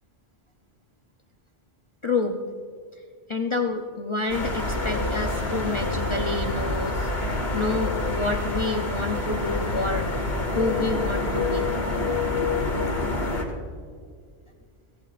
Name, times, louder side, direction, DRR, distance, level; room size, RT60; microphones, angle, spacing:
voice 1, 2.0-2.4 3.3-7.1 7.5-10.1 10.6-11.7, left 3 dB, 35° left, 3 dB, 0.6 m, -28 dB
sound 1, 4.3-13.4, left 2 dB, 65° left, 2.2 m, -27 dB
24.0 x 17.0 x 2.5 m, 2.2 s
omnidirectional pair, 1.1 m